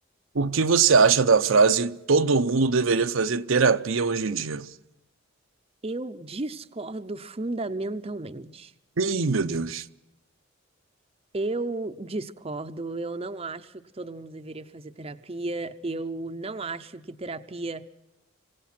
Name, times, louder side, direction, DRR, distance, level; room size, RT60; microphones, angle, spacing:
voice 1, 0.3-4.7 9.0-9.8, right 4 dB, 75° right, 0.7 m, -21 dB
voice 2, 5.8-8.7 11.3-17.9, right 2 dB, 30° right, 0.7 m, -33 dB
26.5 x 16.5 x 6.0 m
head